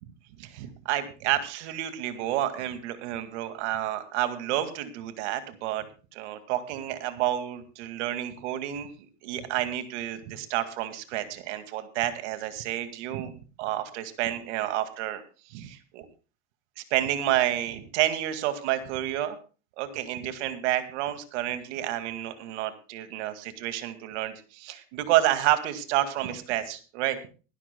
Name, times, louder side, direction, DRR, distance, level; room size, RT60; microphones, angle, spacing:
voice 1, 0.4-5.9 6.1-8.9 9.2-13.3 13.6-15.2 15.5-16.1 16.8-19.4 19.8-27.2, right 13 dB, 75° right, 9 dB, 2.2 m, -29 dB
23.0 x 12.5 x 2.2 m, 0.35 s
supercardioid pair, 140°, 35 cm